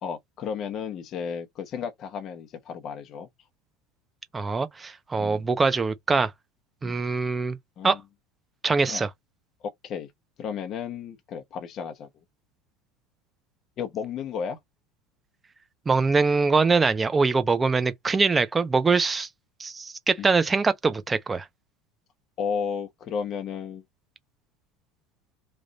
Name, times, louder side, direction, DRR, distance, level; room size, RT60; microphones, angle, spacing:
voice 1, 0.0-3.3 5.2-5.4 6.8-7.0 7.8-8.0 8.9-9.0 9.8-10.1 10.4-12.1 13.8-14.6 20.2-20.3 22.4-23.8, left 7 dB, 35° left, 0.9 m, -33 dB
voice 2, 4.3-6.3 6.8-7.6 7.8-8.0 8.6-9.1 15.9-19.3 19.6-21.4, right 4 dB, 15° right, 0.5 m, -23 dB
3.3 x 2.4 x 3.8 m
cardioid pair, 160°, 0 cm